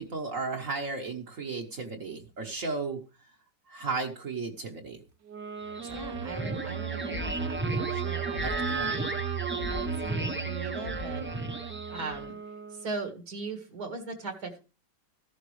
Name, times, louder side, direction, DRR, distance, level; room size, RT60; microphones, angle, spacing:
voice 1, 0.0-3.0 3.7-5.0 5.8-6.0 8.4-8.9, right 4 dB, 50° right, 1 dB, 1.4 m, -34 dB
sound 1, 5.2-13.1, right 8 dB, 90° right, 1.7 m, -39 dB
sound 2, 5.6-12.3, right 3 dB, 10° right, 0.6 m, -33 dB
voice 2, 5.9-9.1 9.7-11.4 11.9-12.4 12.7-14.6, right 3 dB, 70° right, 4 dB, 2.2 m, -39 dB
14.0 x 11.0 x 3.2 m, 0.32 s
omnidirectional pair, 1.8 m